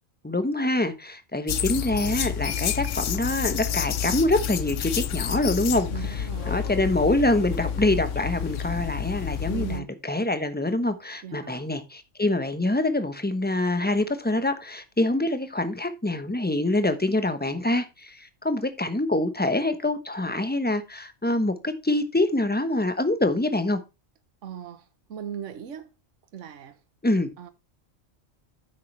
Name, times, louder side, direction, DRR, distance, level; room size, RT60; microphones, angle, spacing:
voice 1, 0.2-5.9 6.2-23.8 27.0-27.3, left 2 dB, 10° left, 0.9 m, -25 dB
sound 1, 1.5-9.8, left 9 dB, 75° left, 1.0 m, -29 dB
voice 2, 5.9-6.7 9.4-10.0 11.2-11.7 24.4-25.9 26.3-26.8 27.4-27.5, right 9 dB, 70° right, 1.3 m, -38 dB
9.5 x 7.6 x 3.2 m
omnidirectional pair, 1.3 m